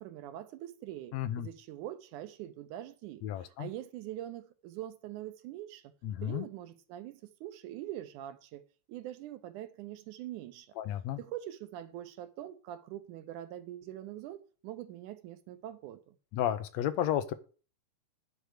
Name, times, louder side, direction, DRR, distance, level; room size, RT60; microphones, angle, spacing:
voice 1, 0.0-5.9 6.2-8.6 8.9-10.7 11.2-16.2, right 13 dB, 85° right, 2.4 m, -43 dB
voice 2, 1.1-1.5 3.2-3.7 6.0-6.5 10.8-11.2 16.3-17.3, left 11 dB, 75° left, 1.9 m, -32 dB
9.7 x 4.6 x 6.5 m
omnidirectional pair, 3.5 m